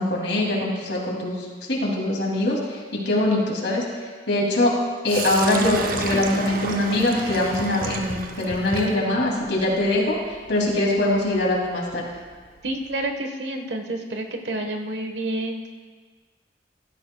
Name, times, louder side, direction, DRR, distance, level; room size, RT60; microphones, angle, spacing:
voice 1, 0.0-3.9 4.3-4.7 5.0-10.2 10.5-12.1, left 1 dB, 85° left, -2 dB, 2.7 m, -23 dB
Sink (filling or washing), 5.1-13.0, right 3 dB, 55° right, 0.8 m, -33 dB
voice 2, 12.6-15.7, right 1 dB, 80° right, 4 dB, 1.3 m, -29 dB
16.0 x 12.5 x 2.3 m, 1.5 s
head